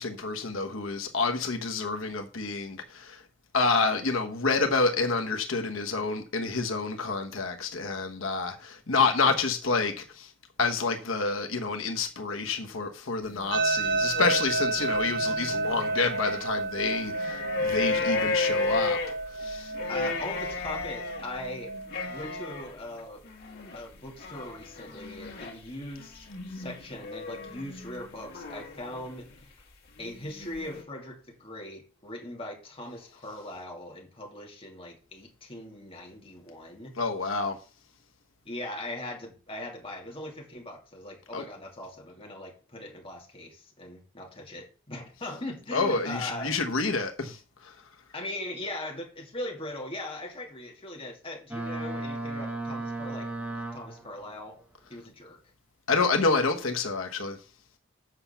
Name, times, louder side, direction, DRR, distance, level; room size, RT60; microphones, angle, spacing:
voice 1, 0.0-3.2 3.5-10.3 10.6-19.0 19.3-19.7 37.0-37.6 41.3-41.4 45.7-47.7 55.9-57.4, left 4 dB, 85° left, 1.1 m, -28 dB
sound 1, 13.2-16.5 16.8-29.4 30.0-30.8, left 3 dB, 50° left, 2.4 m, -35 dB
sound 2, 13.5-22.6, right 3 dB, 60° right, 1.5 m, -31 dB
voice 2, 17.9-18.3 19.9-21.7 22.0-23.2 23.7-29.6 30.0-36.9 38.4-46.6 48.1-54.6 54.9-55.4, left 1 dB, 30° left, 2.6 m, -40 dB
Boat Water vehicle, 51.5-54.2, right 2 dB, 10° right, 1.4 m, -35 dB
8.0 x 5.7 x 7.0 m
head